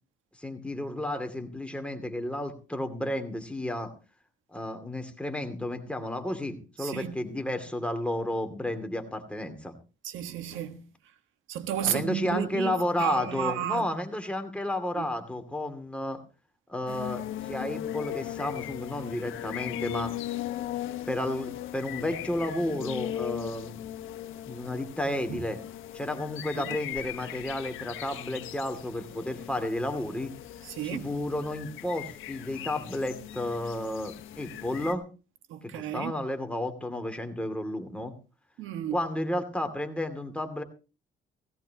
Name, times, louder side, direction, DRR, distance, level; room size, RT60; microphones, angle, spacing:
voice 1, 0.4-3.9 4.5-9.7 11.8-16.2 16.7-20.2 21.1-23.8 24.5-25.6 25.9-30.3 30.8-35.0 35.6-38.1 38.9-40.6, left 1 dB, 5° left, 2.5 m, -32 dB
voice 2, 6.8-7.2 10.0-10.8 11.5-13.9 14.9-15.1 25.3-25.4 26.5-26.8 30.6-31.1 35.5-36.1 38.6-39.0, right 11 dB, 90° right, 1.5 m, -33 dB
sound 1, 16.9-34.9, left 12 dB, 85° left, 1.2 m, -38 dB
17.5 x 16.5 x 2.9 m
cardioid pair, 90°, 20 cm